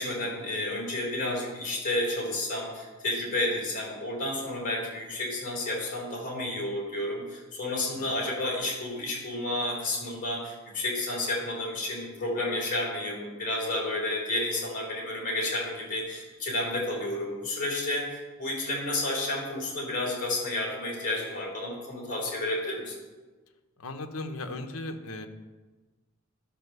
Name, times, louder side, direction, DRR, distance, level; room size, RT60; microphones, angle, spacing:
voice 1, 0.0-23.0, left 1 dB, 40° left, -3 dB, 3.6 m, -31 dB
voice 2, 23.8-25.3, left 2 dB, 75° left, 6 dB, 1.0 m, -37 dB
11.5 x 5.0 x 6.7 m, 1.3 s
head